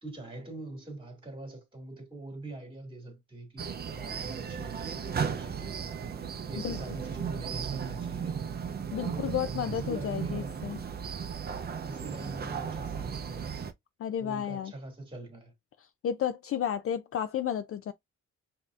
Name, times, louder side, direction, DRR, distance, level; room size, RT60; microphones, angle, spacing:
voice 1, 0.0-5.8 6.5-8.4 9.1-10.6 11.8-13.6 14.2-15.5, right 2 dB, 15° right, 2.0 m, -43 dB
sound 1, 3.6-13.7, right 6 dB, 35° right, 0.5 m, -35 dB
voice 2, 8.9-10.8 14.0-14.7 16.0-17.9, left 9 dB, 50° left, 0.4 m, -32 dB
5.1 x 2.8 x 2.4 m
cardioid pair, 90°, 30 cm